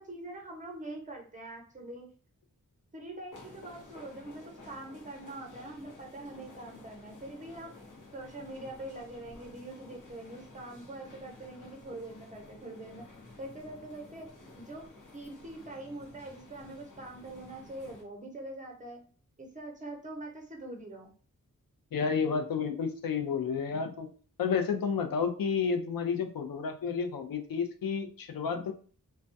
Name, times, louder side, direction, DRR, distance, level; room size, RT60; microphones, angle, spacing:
voice 1, 0.0-2.1 2.9-7.7 8.1-13.0 13.4-14.3 14.6-14.9 15.1-19.0 19.4-21.1, right 1 dB, 20° right, 1 dB, 0.7 m, -44 dB
Japan Tokyo Station More Footsteps and Noises, 3.3-18.0, left 2 dB, 60° left, 0.8 m, -52 dB
voice 2, 21.9-24.1 24.4-28.7, left 6 dB, 75° left, 6 dB, 0.5 m, -31 dB
2.2 x 2.2 x 2.5 m, 0.43 s
wide cardioid pair, 70°, 35 cm